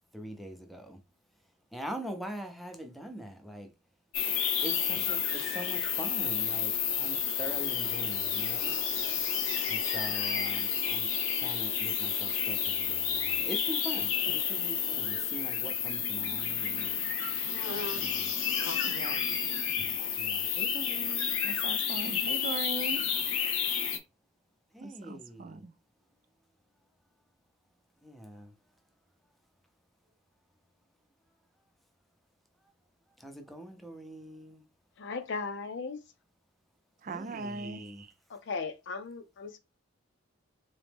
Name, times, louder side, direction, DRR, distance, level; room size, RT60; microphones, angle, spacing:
voice 1, 0.1-1.0 1.7-3.7 4.6-8.8 9.7-16.9 18.0-18.3 20.2-21.3 24.7-25.6 28.0-28.5 33.2-34.6 37.1-38.0, equal, ahead, 0.6 m, -43 dB
sound 1, 4.1-24.0, left 7 dB, 90° left, 0.8 m, -30 dB
voice 2, 18.8-19.3 21.4-23.0 24.8-25.7 37.0-38.1, right 3 dB, 40° right, 0.4 m, -40 dB
voice 3, 35.0-36.0 38.3-39.6, left 4 dB, 60° left, 0.6 m, -37 dB
3.9 x 3.0 x 3.5 m
head